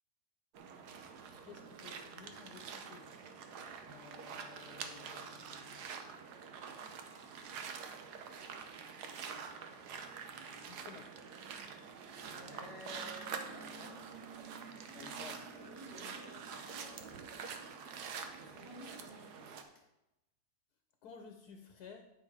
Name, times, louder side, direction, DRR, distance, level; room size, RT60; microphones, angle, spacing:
sound 1, 0.5-19.6, right 6 dB, 80° right, 1.3 m, -46 dB
voice 1, 1.4-3.1 3.9-5.9 10.7-11.1 14.9-15.4 21.0-22.1, left 6 dB, 75° left, 5 dB, 1.3 m, -54 dB
voice 2, 12.3-14.2 14.5-15.1 15.6-17.0 18.4-19.8, equal, 10° right, -4 dB, 2.1 m, -53 dB
9.2 x 5.6 x 4.8 m, 0.94 s
omnidirectional pair, 1.7 m